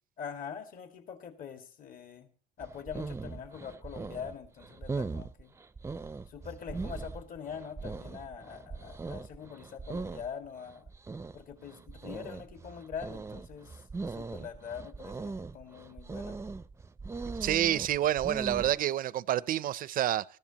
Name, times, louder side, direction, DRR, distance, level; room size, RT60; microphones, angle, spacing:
voice 1, 0.2-2.3 2.6-5.5 6.3-10.9 11.3-16.4, left 7 dB, 55° left, 2.1 m, -43 dB
sound 1, 2.6-18.8, right 4 dB, 15° right, 0.6 m, -40 dB
voice 2, 17.3-20.2, right 12 dB, 55° right, 0.6 m, -28 dB
20.0 x 14.0 x 2.9 m
cardioid pair, 110°, 17 cm